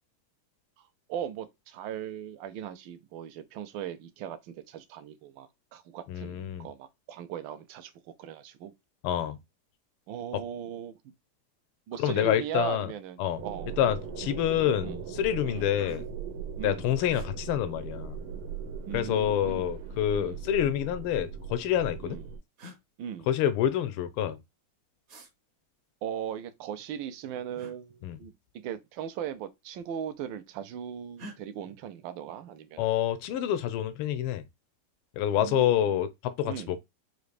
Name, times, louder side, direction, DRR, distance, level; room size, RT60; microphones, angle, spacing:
voice 1, 0.8-8.7 10.1-10.9 11.9-13.7 14.8-15.0 15.5-15.7 16.6-16.9 18.9-19.7 20.2-20.4 22.0-22.3 23.0-23.3 26.0-28.3 28.6-32.9 35.4-36.0 36.5-36.8, right 9 dB, 75° right, 1.2 m, -38 dB
voice 2, 6.1-6.7 9.0-9.4 12.0-12.9 13.2-13.4 13.8-16.1 16.6-18.2 18.9-22.2 23.3-24.4 28.0-28.2 32.8-34.4 35.1-36.8, left 10 dB, 90° left, 1.5 m, -27 dB
sound 1, 13.4-13.6 14.0-14.4 15.0-15.1 15.4-16.3 17.1-17.3 18.5-19.2 20.3-21.2 22.1-22.2 22.6-22.8 25.1-25.3 27.5-27.8 29.1-29.4 29.7-30.3 31.2-31.4, right 1 dB, 55° right, 1.2 m, -49 dB
sound 2, 13.4-22.4, right 6 dB, 90° right, 1.8 m, -39 dB
4.9 x 2.5 x 3.2 m
omnidirectional pair, 2.4 m